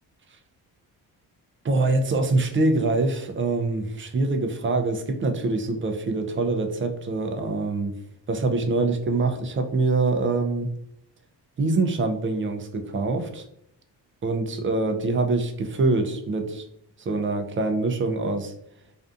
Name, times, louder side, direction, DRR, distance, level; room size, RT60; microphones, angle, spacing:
voice 1, 1.6-8.0 8.3-10.7 11.6-13.4 14.2-16.7 17.0-18.5, right 3 dB, 30° right, 5 dB, 0.5 m, -24 dB
2.6 x 2.2 x 2.5 m, 0.74 s
cardioid pair, 65°, 41 cm